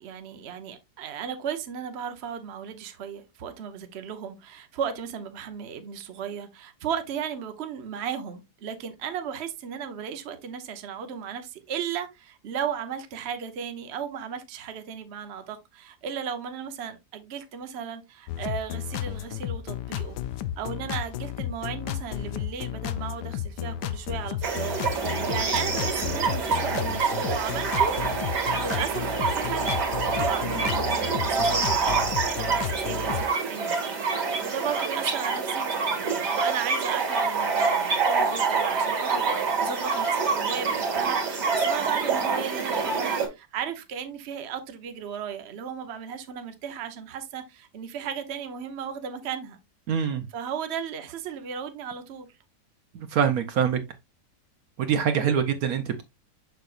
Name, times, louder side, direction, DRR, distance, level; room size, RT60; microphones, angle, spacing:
voice 1, 0.0-20.2 20.6-27.9 28.6-29.7 30.1-49.6 50.3-52.3, right 7 dB, 50° right, 1.0 m, -35 dB
sound 1, 18.3-33.3, left 11 dB, 85° left, 1.2 m, -33 dB
sound 2, 24.4-43.3, right 5 dB, 80° right, 2.6 m, -26 dB
voice 2, 49.9-50.2 52.9-53.8 54.8-56.0, right 8 dB, 65° right, 1.2 m, -24 dB
6.8 x 6.3 x 2.5 m
omnidirectional pair, 1.8 m